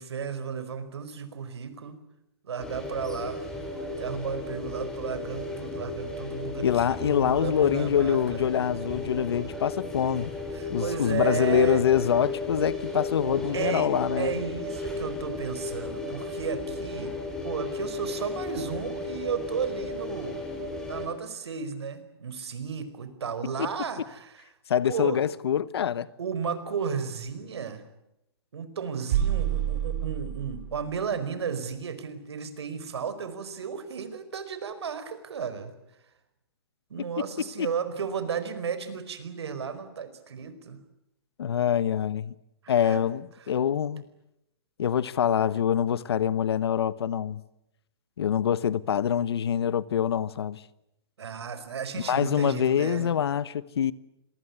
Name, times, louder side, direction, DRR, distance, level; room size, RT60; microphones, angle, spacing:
voice 1, 0.0-2.0 2.4-3.4 4.0-8.4 10.5-11.8 13.5-13.9 14.2-17.2 17.4-20.4 20.9-24.4 24.8-25.2 26.2-27.8 28.5-35.7 36.9-40.8 42.6-43.0 43.4-43.5 51.2-53.1, right 6 dB, 85° right, 4.8 m, -33 dB
sound 1, 2.6-21.1, left 2 dB, 5° left, 3.8 m, -35 dB
voice 2, 6.6-10.3 10.7-14.4 23.6-23.7 24.7-26.1 37.6-37.7 41.4-42.3 42.7-44.0 44.8-47.4 48.2-50.6 52.1-53.9, left 9 dB, 70° left, 1.3 m, -25 dB
sound 2, 29.1-30.9, right 11 dB, 40° right, 4.4 m, -28 dB
27.0 x 20.5 x 9.7 m
hypercardioid pair, 170°, 13 cm